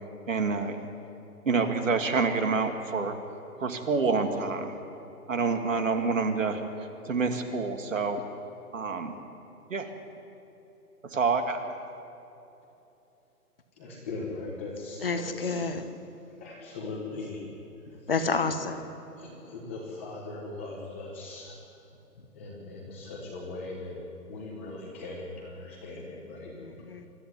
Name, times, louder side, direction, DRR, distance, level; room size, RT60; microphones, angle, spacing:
voice 1, 0.3-0.8 1.4-3.2 3.6-4.7 5.3-8.2 8.7-9.2 9.7-9.9 11.0-11.6, right 4 dB, 55° right, 5 dB, 2.6 m, -27 dB
voice 2, 13.8-15.6 16.4-17.4 19.2-21.6 22.3-24.0 24.3-26.5, left 3 dB, 10° left, -3 dB, 1.4 m, -39 dB
voice 3, 15.0-15.9 18.1-18.9 26.6-27.1, left 4 dB, 35° left, 7 dB, 1.4 m, -29 dB
26.5 x 13.5 x 9.8 m, 2.9 s
hypercardioid pair, 175°, 47 cm